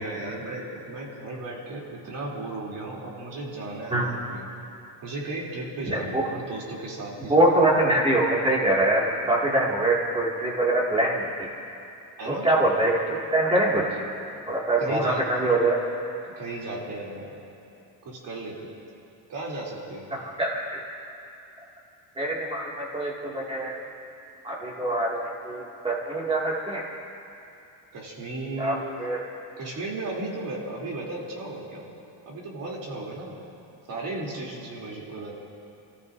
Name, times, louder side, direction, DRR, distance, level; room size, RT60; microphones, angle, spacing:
voice 1, 0.0-4.5 5.0-7.5 12.2-12.5 14.8-15.3 16.3-17.4 18.0-18.8 19.3-20.1 27.9-28.8 29.6-31.9 32.2-33.4 33.9-35.3, right 2 dB, 45° right, -4 dB, 3.2 m, -35 dB
voice 2, 5.9-6.2 7.3-11.3 12.3-14.1 14.5-15.8 20.4-20.8 22.2-23.8 24.4-26.9 28.6-29.2, right 1 dB, 10° right, -4 dB, 2.3 m, -24 dB
29.0 x 15.0 x 2.7 m, 2.7 s
cardioid pair, 160°, 45 cm